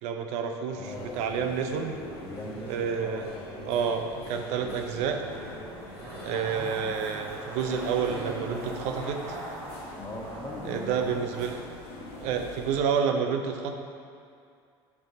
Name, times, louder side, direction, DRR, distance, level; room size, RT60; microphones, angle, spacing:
voice 1, 0.0-2.0 2.7-3.3 3.6-5.2 6.2-9.4 10.6-11.6 12.2-13.7, right 6 dB, 65° right, 5 dB, 0.6 m, -29 dB
voice 2, 0.7-1.2 2.2-3.8 10.0-11.2, left 1 dB, 25° left, -1 dB, 1.4 m, -41 dB
sound 1, 0.8-12.8, left 2 dB, 80° left, 1.8 m, -44 dB
Zipper (clothing), 4.0-11.7 11.9-12.0, right 2 dB, 80° right, 1.6 m, -41 dB
8.1 x 5.3 x 4.0 m, 2.4 s
hypercardioid pair, 80°, 13 cm